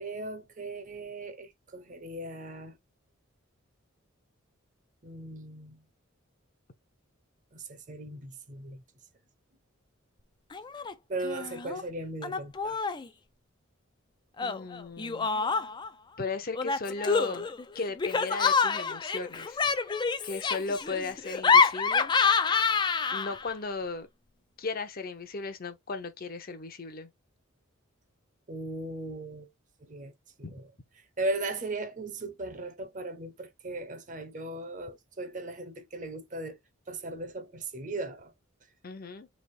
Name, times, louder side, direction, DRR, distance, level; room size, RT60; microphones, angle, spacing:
voice 1, 0.0-2.8 5.0-5.8 7.5-8.8 11.1-12.8 28.5-29.5 29.8-30.1 30.4-30.7 31.0-36.6 36.9-38.3, right 2 dB, 40° right, 0.8 m, -37 dB
Laughter, 10.5-10.9 11.2-11.8 12.2-13.1 14.4-15.9 16.6-23.5, left 5 dB, 20° left, 0.3 m, -27 dB
voice 2, 14.4-15.3 16.2-17.5 17.7-20.0 20.2-22.1 22.6-22.8 23.1-24.1 24.6-27.1 30.4-30.5 38.8-39.3, left 3 dB, 45° left, 0.7 m, -36 dB
3.4 x 2.9 x 4.2 m
head